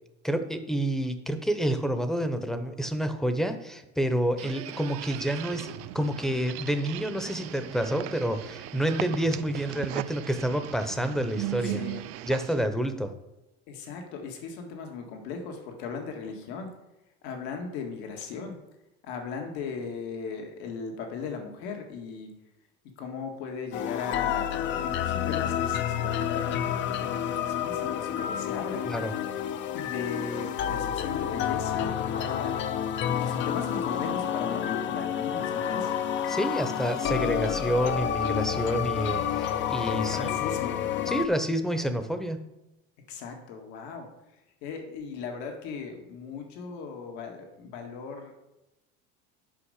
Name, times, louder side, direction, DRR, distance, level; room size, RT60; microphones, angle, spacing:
voice 1, 0.2-11.8 12.3-13.1 28.9-29.1 33.2-33.3 36.3-40.4 41.1-42.4, right 1 dB, ahead, 9 dB, 0.8 m, -28 dB
sound 1, 4.4-12.4, right 11 dB, 45° right, 0.7 m, -43 dB
sound 2, 5.0-12.7, right 18 dB, 85° right, 0.5 m, -39 dB
voice 2, 11.6-12.0 13.7-16.7 17.2-18.6 19.0-22.3 23.0-28.9 29.1-29.3 29.7-32.6 33.2-35.9 40.0-40.8 43.1-48.3, left 5 dB, 80° left, 3 dB, 1.8 m, -38 dB
sound 3, 23.7-41.3, left 9 dB, 35° left, 0.5 m, -29 dB
10.0 x 5.4 x 6.5 m, 0.94 s
cardioid pair, 140°, 32 cm